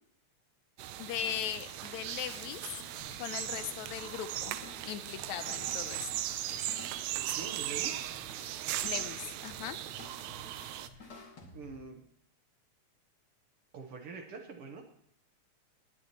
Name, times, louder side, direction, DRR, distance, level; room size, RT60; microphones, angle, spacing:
sound 1, 0.8-10.9, right 12 dB, 75° right, 1.8 m, -38 dB
voice 1, 1.0-2.8 3.2-4.5 4.8-6.1 8.8-9.8, left 10 dB, 80° left, 11 dB, 2.0 m, -39 dB
Shatter, 1.1-4.0 4.4-7.6, left 5 dB, 55° left, 1.9 m, -60 dB
sound 2, 3.0-11.9, left 2 dB, 35° left, 2.4 m, -53 dB
voice 2, 7.2-8.2 10.8-11.2 11.5-12.0 13.7-14.8, right 4 dB, 60° right, 4 dB, 1.7 m, -45 dB
19.0 x 10.5 x 2.9 m, 0.70 s
omnidirectional pair, 3.4 m